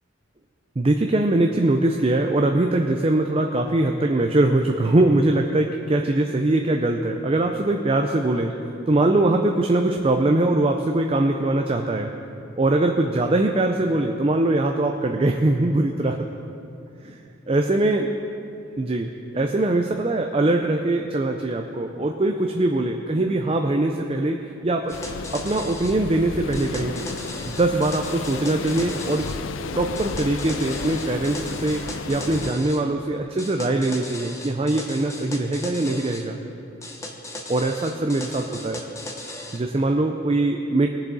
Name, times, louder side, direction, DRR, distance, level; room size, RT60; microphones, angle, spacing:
voice 1, 0.8-8.6 8.9-12.1 12.6-16.2 17.0-17.2 17.5-18.1 18.8-19.1 19.3-24.4 24.6-25.0 25.3-27.1 27.5-29.3 29.7-31.8 32.1-36.4 37.5-38.8 39.5-40.9, right 2 dB, 30° right, 3 dB, 0.4 m, -22 dB
sound 1, 24.9-32.5, left 5 dB, 75° left, 0.5 m, -33 dB
sound 2, 24.9-26.0 26.5-29.4 29.9-32.8 33.4-36.3 36.8-39.6, left 1 dB, 15° left, 0.8 m, -37 dB
19.5 x 7.2 x 4.1 m, 2.7 s
head